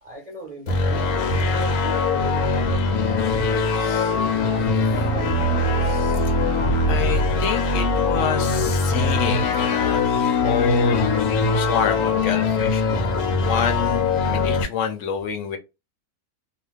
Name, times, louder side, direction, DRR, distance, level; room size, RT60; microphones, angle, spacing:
voice 1, 0.0-5.3, right 3 dB, 40° right, 0.5 m, -40 dB
sound 1, 0.7-14.6, left 3 dB, 85° left, 1.1 m, -21 dB
voice 2, 3.8-4.1 5.9-6.3 6.9-11.1 11.5-15.6, left 7 dB, 70° left, 0.9 m, -28 dB
2.4 x 2.2 x 3.1 m
omnidirectional pair, 1.5 m